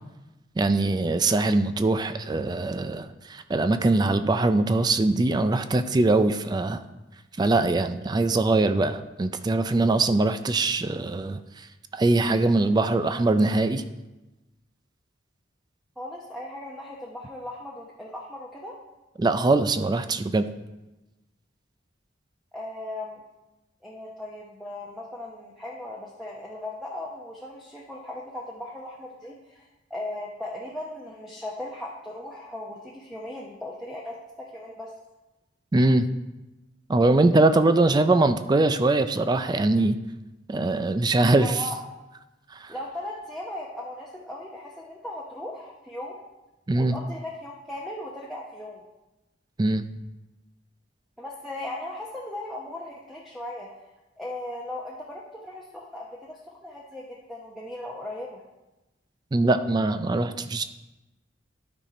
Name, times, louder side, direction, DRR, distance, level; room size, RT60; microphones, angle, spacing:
voice 1, 0.6-6.8 7.4-11.7 11.9-13.8 19.2-20.4 35.7-36.1 36.9-40.0 40.5-41.7 42.6-42.7 46.7-47.0 49.6-49.8 59.3-60.6, right 2 dB, 20° right, 10 dB, 0.3 m, -22 dB
voice 2, 16.0-18.8 22.5-23.2 23.8-29.6 29.9-34.9 41.4-41.8 42.7-46.2 46.7-48.8 51.2-53.7 54.2-58.4, left 1 dB, ahead, -4 dB, 0.8 m, -37 dB
12.0 x 4.3 x 4.9 m, 1.0 s
head